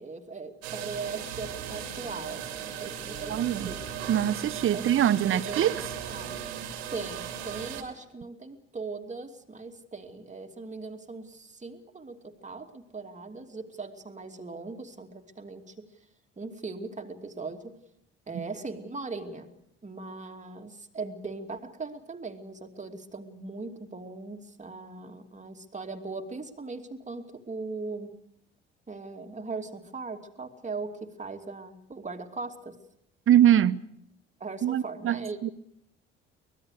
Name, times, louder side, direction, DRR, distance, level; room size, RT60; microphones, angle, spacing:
voice 1, 0.0-3.8 4.7-6.4 6.9-15.9 16.4-17.8 18.3-19.5 19.8-28.2 28.9-32.8 34.4-35.5, right 3 dB, 20° right, 2.7 m, -39 dB
sound 1, 0.6-7.8, right 8 dB, 75° right, 2.6 m, -37 dB
voice 2, 3.3-3.7 4.1-5.7 33.3-33.8 34.6-35.5, right 11 dB, 40° right, 0.9 m, -23 dB
24.0 x 19.0 x 6.7 m
figure-of-eight pair, 50°, 32 cm